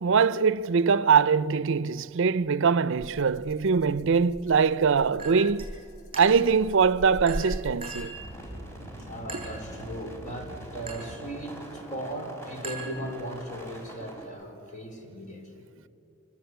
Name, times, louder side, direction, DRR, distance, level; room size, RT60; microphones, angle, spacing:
voice 1, 0.0-5.8 6.1-8.2, right 5 dB, 65° right, 0.5 m, -23 dB
Rattle (instrument), 3.0-8.3, equal, 75° left, 1.6 m, -41 dB
Chink clink, 5.2-5.7 6.1-6.6 7.3-8.2 9.3-9.7 10.9-11.2 12.6-13.4, right 4 dB, 25° right, 7.1 m, -41 dB
sound 1, 8.1-14.2, equal, 15° left, 4.8 m, -43 dB
voice 2, 9.0-15.7, right 1 dB, 40° left, 4.5 m, -38 dB
27.5 x 20.5 x 8.1 m
head